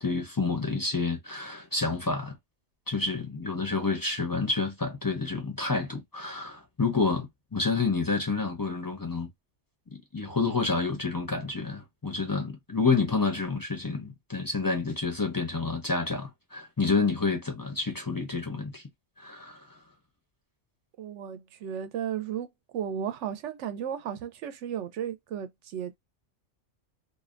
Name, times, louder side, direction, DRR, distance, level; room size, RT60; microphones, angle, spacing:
voice 1, 0.0-2.4 2.9-9.3 9.9-18.8 19.2-19.7, left 4 dB, 25° left, 0.5 m, -29 dB
voice 2, 21.0-26.0, right 9 dB, 80° right, 0.9 m, -34 dB
2.6 x 2.1 x 2.4 m
omnidirectional pair, 1.2 m